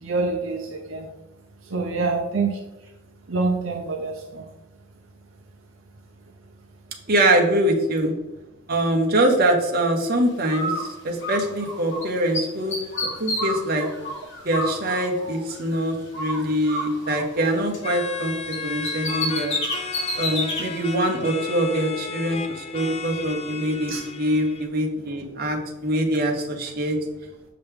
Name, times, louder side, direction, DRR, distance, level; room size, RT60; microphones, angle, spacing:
voice 1, 0.0-1.1 1.7-2.6 3.3-4.4 23.9-24.0, right 3 dB, 75° right, 1 dB, 0.7 m, -26 dB
voice 2, 7.1-8.1 8.7-12.7 13.2-13.9 14.4-19.6 20.1-27.0, right 1 dB, 50° right, 2 dB, 1.2 m, -23 dB
Bird, 10.5-12.0 12.3-15.8 16.1-18.2 18.5-20.6, left 1 dB, 60° left, 1.5 m, -30 dB
sound 1, 17.8-24.7, left 5 dB, 30° left, 0.5 m, -34 dB
6.9 x 5.3 x 3.5 m, 1.0 s
head